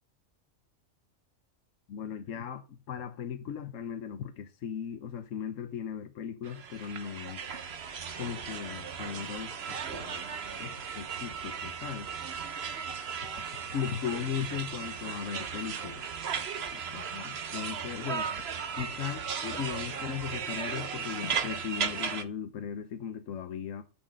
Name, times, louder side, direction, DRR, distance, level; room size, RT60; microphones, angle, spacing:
voice 1, 1.9-7.4 8.2-10.3 10.6-12.1 13.3-16.0 16.7-18.3 18.8-23.8, left 8 dB, 85° left, 1.2 m, -37 dB
sound 1, 6.4-22.2, right 6 dB, 55° right, 1.1 m, -36 dB
11.5 x 6.3 x 6.3 m
omnidirectional pair, 1.3 m